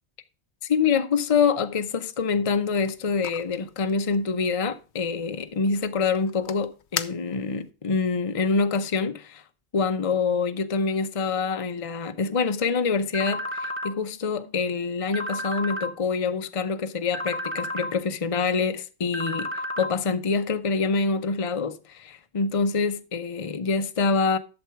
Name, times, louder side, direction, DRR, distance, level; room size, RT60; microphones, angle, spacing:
voice 1, 0.6-9.4 9.7-24.4, left 5 dB, 35° left, 0.7 m, -26 dB
sound 1, 2.5-7.7, left 9 dB, 85° left, 1.0 m, -40 dB
sound 2, 13.1-13.9 15.1-15.9 17.1-17.9 19.1-19.9, left 1 dB, 15° right, 0.9 m, -31 dB
11.5 x 7.2 x 4.6 m
omnidirectional pair, 1.1 m